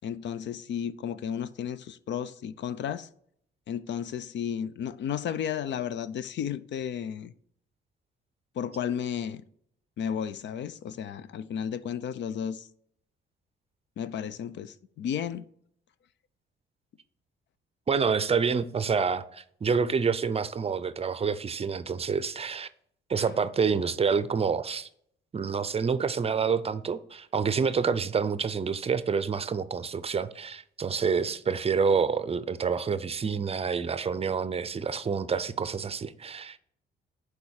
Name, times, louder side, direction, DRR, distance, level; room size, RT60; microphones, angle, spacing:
voice 1, 0.0-3.1 3.7-7.3 8.6-9.4 10.0-12.7 14.0-15.5 23.2-23.3, left 8 dB, 65° left, 0.5 m, -33 dB
voice 2, 17.9-22.7 23.1-24.9 25.3-36.6, right 6 dB, 30° right, 0.5 m, -28 dB
7.0 x 4.9 x 6.4 m
cardioid pair, 90°, 20 cm